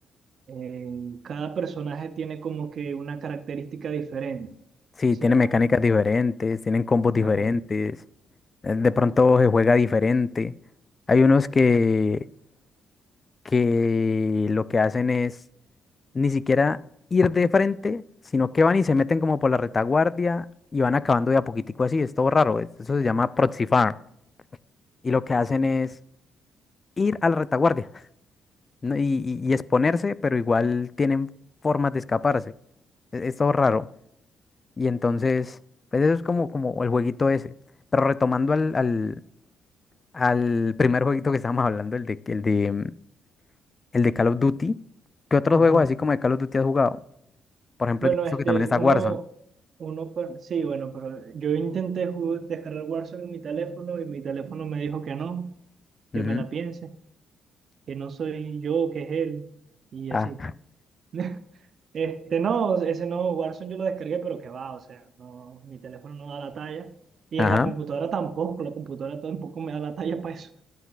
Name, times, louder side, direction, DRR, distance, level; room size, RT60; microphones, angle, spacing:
voice 1, 0.5-4.5 5.2-5.7 7.2-7.5 45.5-45.8 48.0-49.2 49.8-55.5 56.1-56.9 57.9-59.5 59.9-60.4 61.1-61.4 61.9-66.9 67.3-70.5, right 6 dB, 55° right, 0.6 m, -30 dB
voice 2, 5.0-8.0 8.6-10.5 11.1-12.3 13.5-15.4 16.1-16.8 17.1-18.0 18.3-20.4 20.7-23.9 25.0-25.9 27.0-27.9 28.8-31.3 31.6-32.4 33.1-33.9 34.8-35.6 35.9-37.5 37.9-39.2 40.1-42.9 43.9-44.8 45.3-47.0 47.8-48.1 48.5-49.2 56.1-56.4 60.1-60.5 67.4-67.7, left 4 dB, 30° left, 0.3 m, -22 dB
12.0 x 8.1 x 2.4 m
cardioid pair, 90°, 0 cm